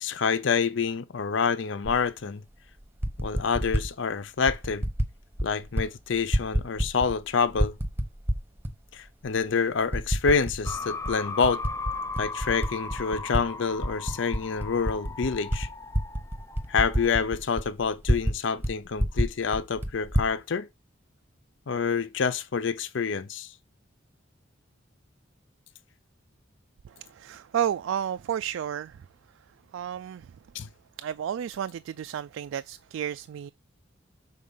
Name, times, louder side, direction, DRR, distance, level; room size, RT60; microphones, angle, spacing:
voice 1, 0.0-2.4 3.2-4.9 5.4-7.7 8.9-11.6 12.2-15.7 16.7-20.7 21.7-23.5 30.5-30.7, left 5 dB, 70° left, 0.5 m, -27 dB
Typing, 1.8-2.0 2.8-3.9 4.5-5.1 5.4-5.9 6.1-7.2 7.5-8.7 9.3-9.4 9.9-10.8 11.1-13.4 13.8-18.4 18.6-18.7 19.0-20.3, equal, 10° right, 0.9 m, -28 dB
sound 1, 10.6-17.2, left 3 dB, 15° left, 0.5 m, -37 dB
voice 2, 26.8-29.0 29.7-30.3 31.0-33.5, right 9 dB, 80° right, 0.3 m, -32 dB
6.5 x 4.3 x 5.4 m
head